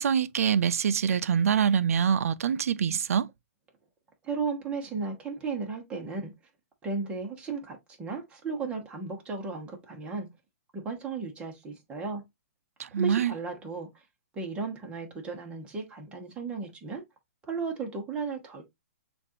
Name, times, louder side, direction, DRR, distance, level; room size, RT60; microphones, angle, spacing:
voice 1, 0.0-3.3 12.8-13.3, right 7 dB, 70° right, 0.5 m, -25 dB
voice 2, 4.2-6.3 6.8-10.3 10.7-12.2 13.0-14.0 14.3-17.0 17.5-18.6, right 4 dB, 15° right, 1.2 m, -35 dB
6.6 x 2.6 x 2.8 m
hypercardioid pair, 150°, 8 cm